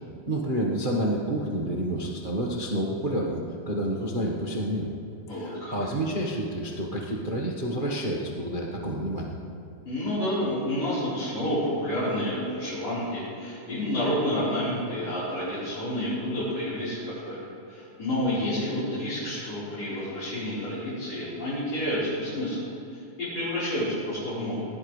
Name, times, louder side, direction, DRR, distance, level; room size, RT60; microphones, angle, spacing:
voice 1, 0.3-4.9 5.4-9.3, right 1 dB, 65° right, -2 dB, 0.4 m, -29 dB
voice 2, 5.3-5.7 9.9-17.4 17.7-24.7, left 1 dB, 50° left, -13 dB, 5.4 m, -29 dB
20.0 x 17.0 x 3.3 m, 2.7 s
omnidirectional pair, 3.6 m